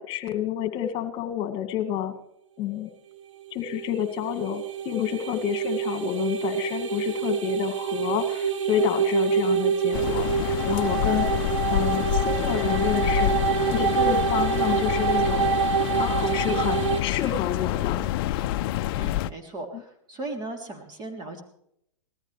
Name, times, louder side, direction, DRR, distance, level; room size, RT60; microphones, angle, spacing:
voice 1, 0.0-2.1 2.6-2.9 3.5-11.3 11.7-15.5 15.9-18.1, left 11 dB, 35° left, 7 dB, 2.3 m, -29 dB
sound 1, 3.5-17.0, right 7 dB, 75° right, 1.4 m, -26 dB
sound 2, 9.9-19.3, left 14 dB, 50° left, 0.6 m, -27 dB
voice 2, 19.0-21.4, right 2 dB, 25° right, 4 dB, 3.2 m, -37 dB
19.5 x 14.5 x 3.3 m, 0.73 s
hypercardioid pair, 125°, 16 cm